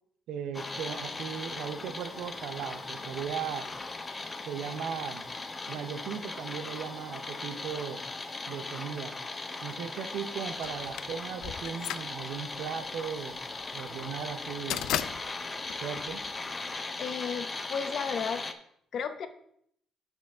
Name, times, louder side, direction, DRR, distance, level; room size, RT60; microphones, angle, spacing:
voice 1, 0.3-3.7 4.5-5.3 5.7-8.0 8.5-9.2 9.6-13.4 13.7-14.9 15.8-16.2, right 8 dB, 75° right, 11 dB, 0.6 m, -37 dB
sound 1, 0.5-18.5, left 3 dB, 20° left, 0.6 m, -38 dB
sound 2, 10.6-16.8, left 11 dB, 80° left, 0.3 m, -37 dB
voice 2, 17.0-18.4 18.9-19.3, left 6 dB, 50° left, 9 dB, 0.8 m, -33 dB
12.5 x 4.5 x 3.5 m, 0.69 s
cardioid pair, 145°, 0 cm